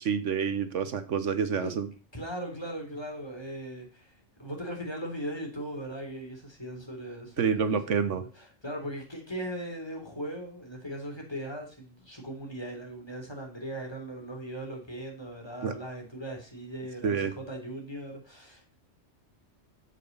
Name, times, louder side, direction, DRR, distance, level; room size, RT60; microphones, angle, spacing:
voice 1, 0.0-1.9 7.4-8.2 15.6-15.8 17.0-17.3, right 6 dB, 75° right, 1.3 m, -28 dB
voice 2, 2.1-18.8, right 1 dB, 20° left, 3.4 m, -39 dB
8.1 x 7.7 x 5.4 m
omnidirectional pair, 1.3 m